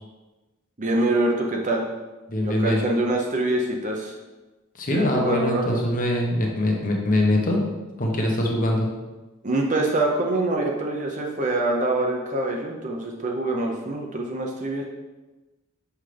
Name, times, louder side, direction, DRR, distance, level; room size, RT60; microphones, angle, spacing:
voice 1, 0.8-1.9 2.4-4.1 4.9-5.8 9.4-14.8, right 2 dB, 35° right, 0 dB, 0.7 m, -25 dB
voice 2, 2.3-2.8 4.7-7.6 8.0-8.9, left 1 dB, 35° left, 0 dB, 1.1 m, -23 dB
6.5 x 5.6 x 3.3 m, 1.2 s
head